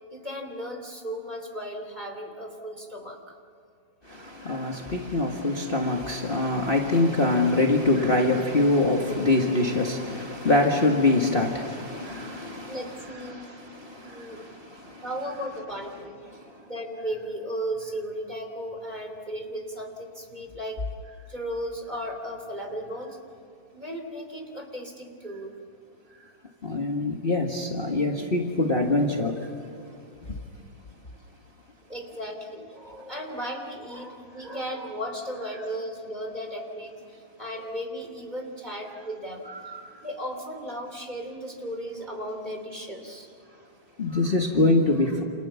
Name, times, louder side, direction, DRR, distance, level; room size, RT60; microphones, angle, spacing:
voice 1, 0.1-3.3 12.7-13.6 14.0-14.4 15.0-16.2 16.6-20.8 21.3-23.2 23.7-25.5 31.9-36.9 37.4-39.7 40.0-43.3, equal, 20° right, 4 dB, 3.2 m, -35 dB
voice 2, 4.0-15.5 15.7-16.0 16.3-16.5 26.6-29.5 30.3-30.4 34.4-34.7 35.5-35.7 39.4-39.9 44.0-45.2, left 2 dB, 30° left, 1 dB, 1.9 m, -25 dB
29.5 x 28.5 x 7.1 m, 2.5 s
omnidirectional pair, 2.2 m